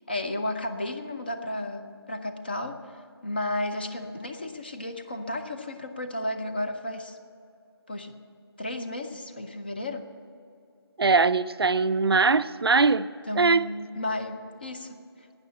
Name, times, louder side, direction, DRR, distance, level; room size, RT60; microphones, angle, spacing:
voice 1, 0.1-7.2 7.9-8.1 8.6-10.1 13.3-15.0, left 1 dB, 20° left, 0.5 m, -33 dB
voice 2, 11.0-13.7, right 4 dB, 65° right, 0.5 m, -22 dB
12.0 x 9.4 x 8.6 m
figure-of-eight pair, 170°, 14 cm